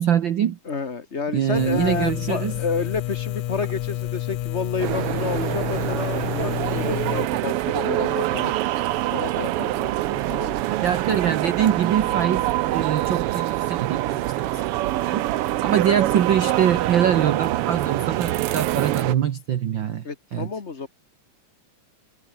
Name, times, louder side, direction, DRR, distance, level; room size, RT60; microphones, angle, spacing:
voice 1, 0.0-0.6 1.3-2.5 10.8-14.6 15.0-20.0 20.3-20.5, right 9 dB, 65° right, 1.2 m, -23 dB
voice 2, 0.6-10.6 20.0-20.9, left 5 dB, 30° left, 1.5 m, -30 dB
sound 1, 1.5-7.3, left 14 dB, 90° left, 2.5 m, -29 dB
sound 2, 4.8-19.2, right 15 dB, 85° right, 1.3 m, -25 dB
omnidirectional pair, 3.5 m